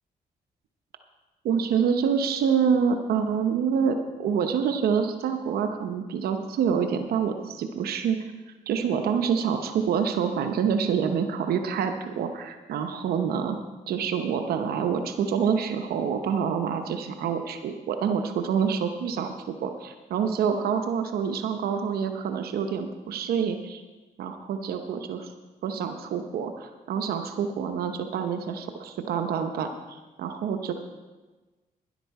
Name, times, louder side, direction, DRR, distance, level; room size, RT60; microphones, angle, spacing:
voice 1, 1.4-8.2 8.7-13.6 13.9-19.3 19.6-23.8 24.2-25.3 25.6-30.7, right 7 dB, 90° right, 6 dB, 0.8 m, -27 dB
12.5 x 11.0 x 4.7 m, 1.2 s
cardioid pair, 75°, 15 cm